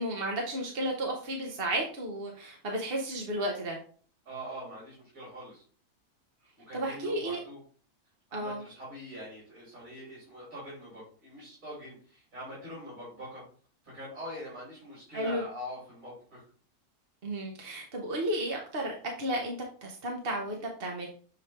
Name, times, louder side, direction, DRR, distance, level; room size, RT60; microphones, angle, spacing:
voice 1, 0.0-3.8 6.7-7.4 8.3-8.6 15.1-15.4 17.2-19.6 19.8-21.1, right 1 dB, 45° right, 0 dB, 1.0 m, -33 dB
voice 2, 4.3-5.6 6.7-7.6 8.3-13.4 13.8-16.4, equal, 65° right, -8 dB, 3.8 m, -43 dB
7.2 x 3.3 x 4.3 m, 0.43 s
omnidirectional pair, 1.6 m